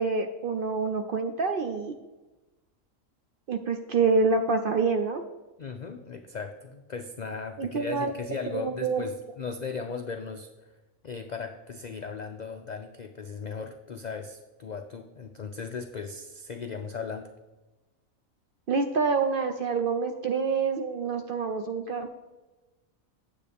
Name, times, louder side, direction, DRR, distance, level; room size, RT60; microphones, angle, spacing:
voice 1, 0.0-1.9 3.5-5.2 7.6-9.1 18.7-22.2, right 4 dB, 65° right, 6 dB, 0.5 m, -27 dB
voice 2, 5.6-10.5 11.0-17.3, left 5 dB, 80° left, 6 dB, 0.4 m, -37 dB
9.1 x 7.7 x 3.4 m, 1.1 s
omnidirectional pair, 1.4 m